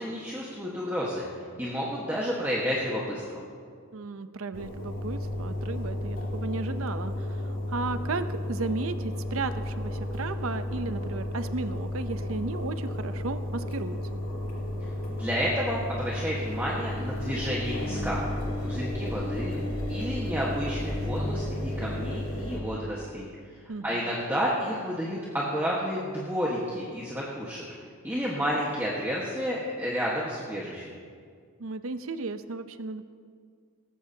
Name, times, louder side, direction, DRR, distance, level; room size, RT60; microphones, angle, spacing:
voice 1, 0.0-3.4 15.1-18.2 18.6-19.5 19.9-23.3 23.8-27.6 28.0-30.9, equal, 10° right, -5 dB, 1.4 m, -31 dB
voice 2, 3.9-14.0 23.7-24.1 31.6-33.0, right 3 dB, 75° right, 11 dB, 0.7 m, -34 dB
Engine, 4.5-22.6, left 1 dB, 75° left, 2.6 m, -33 dB
18.5 x 14.5 x 2.8 m, 2.1 s
head